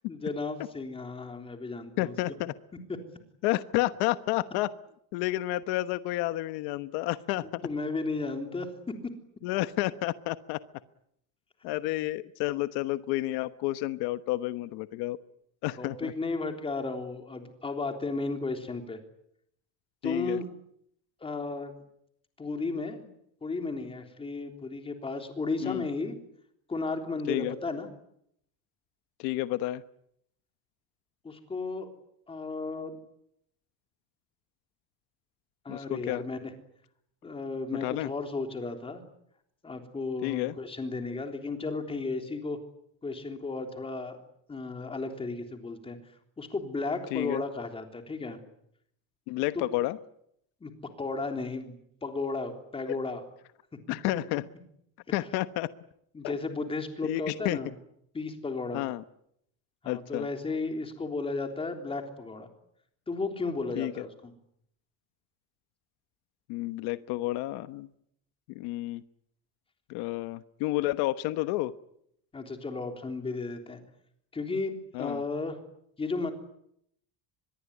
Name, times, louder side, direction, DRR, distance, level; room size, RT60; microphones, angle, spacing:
voice 1, 0.1-2.1 7.6-8.9 11.7-11.8 15.8-19.0 20.0-20.5 21.2-21.7 22.4-23.1 23.4-26.2 26.7-27.9 31.2-31.9 32.3-33.0 35.7-36.5 37.2-39.0 39.6-42.6 43.0-44.2 44.5-46.0 46.4-48.4 50.6-50.7 51.0-53.2 56.1-57.7 58.1-58.9 59.8-62.5 63.1-64.3 72.3-73.8 74.3-75.6 76.0-76.3, left 3 dB, 15° left, 5 dB, 3.5 m, -34 dB
voice 2, 2.0-2.5 3.4-4.7 5.1-7.6 9.4-10.6 11.6-15.2 15.6-16.1 20.0-20.4 25.6-25.8 27.3-27.5 29.2-29.8 35.7-36.2 37.8-38.1 40.2-40.6 47.1-47.4 49.3-50.0 53.9-54.5 55.1-55.7 56.2-56.3 57.0-57.6 58.7-59.0 59.9-60.3 63.8-63.9 66.5-67.9 68.5-69.0 69.9-71.7 74.9-75.2, left 17 dB, 85° left, 13 dB, 1.2 m, -30 dB
25.0 x 22.0 x 9.6 m, 0.73 s
cardioid pair, 170°, 38 cm